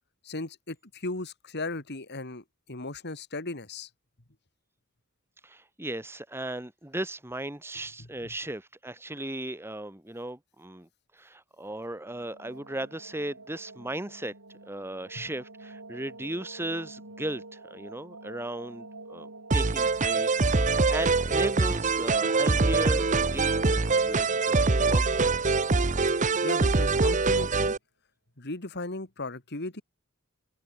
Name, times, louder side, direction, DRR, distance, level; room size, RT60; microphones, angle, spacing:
voice 1, 0.2-3.9 8.0-8.1 15.2-15.3 26.4-27.7 28.4-29.8, left 2 dB, 50° left, 2.5 m, -36 dB
voice 2, 5.4-14.3 14.6-25.6, right 1 dB, 10° right, 1.8 m, -37 dB
sound 1, 11.9-26.7, right 2 dB, 85° right, 4.8 m, -48 dB
sound 2, 19.5-27.8, right 3 dB, 35° right, 0.9 m, -24 dB
head